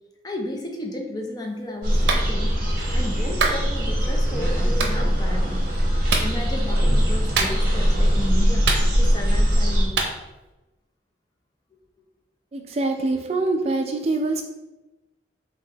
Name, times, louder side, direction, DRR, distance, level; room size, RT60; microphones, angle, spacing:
voice 1, 0.2-2.6 2.9-10.0, left 1 dB, 20° left, 1 dB, 0.5 m, -33 dB
sound 1, 1.8-9.9, equal, 55° right, 1.0 m, -21 dB
Clapping, 2.1-2.3 3.4-3.6 4.8-5.0 6.1-6.3 7.4-7.8 8.7-9.2 10.0-10.1, right 4 dB, 80° right, 0.6 m, -24 dB
voice 2, 12.5-14.4, right 2 dB, 35° right, 4 dB, 0.3 m, -24 dB
3.7 x 2.8 x 3.9 m, 1.0 s
head